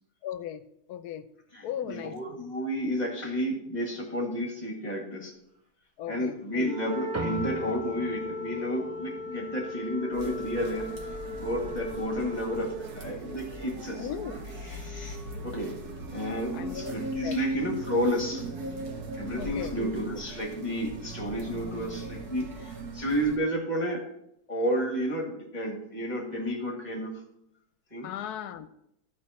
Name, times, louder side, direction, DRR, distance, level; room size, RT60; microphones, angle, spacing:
voice 1, 0.2-0.6 0.9-1.2 1.6-2.2 6.0-6.7 14.0-14.4 16.5-16.9 17.2-17.4 19.4-19.8 28.0-28.7, left 10 dB, 85° left, 12 dB, 1.2 m, -36 dB
voice 2, 1.5-5.3 6.1-14.1 14.6-15.8 16.1-18.5 19.2-24.0 24.5-27.1 27.9-28.1, equal, 25° left, 0 dB, 2.1 m, -31 dB
Wind instrument woodwind instrument, 6.6-12.9, left 2 dB, 50° right, 2.8 m, -37 dB
sound 1, 7.1-11.9, right 1 dB, 20° right, 0.4 m, -42 dB
sound 2, 10.1-23.4, right 2 dB, 80° right, 1.7 m, -39 dB
13.0 x 5.0 x 4.2 m, 0.78 s
omnidirectional pair, 1.6 m